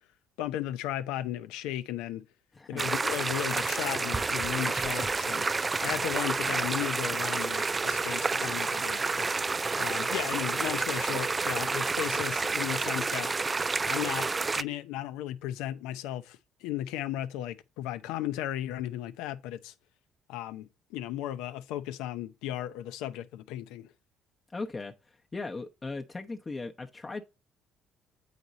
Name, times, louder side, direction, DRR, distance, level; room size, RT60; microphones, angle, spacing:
voice 1, 0.4-2.3 2.7-5.5 5.8-9.3 9.8-13.3 13.9-14.3 14.6-19.7 20.3-23.9, left 12 dB, 80° left, 0.6 m, -35 dB
voice 2, 2.6-2.9 24.5-24.9 25.3-27.2, left 3 dB, 30° left, 0.8 m, -37 dB
sound 1, 2.8-14.6, right 4 dB, 30° right, 0.3 m, -29 dB
8.1 x 5.1 x 4.1 m
supercardioid pair, 65°, 0 cm